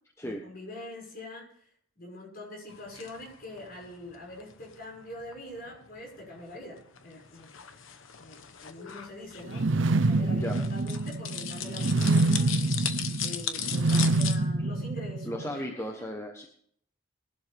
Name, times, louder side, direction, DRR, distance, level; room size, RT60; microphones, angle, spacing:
voice 1, 0.2-1.7 2.0-7.5 8.2-16.0, left 1 dB, 45° left, -1 dB, 6.1 m, -44 dB
sound 1, 2.7-14.4, left 9 dB, 80° left, 1.1 m, -39 dB
sound 2, 9.5-15.5, right 2 dB, 65° right, 0.6 m, -26 dB
voice 2, 10.3-10.6 15.2-16.4, equal, 15° left, 2 dB, 1.1 m, -35 dB
19.0 x 11.5 x 3.5 m, 0.63 s
head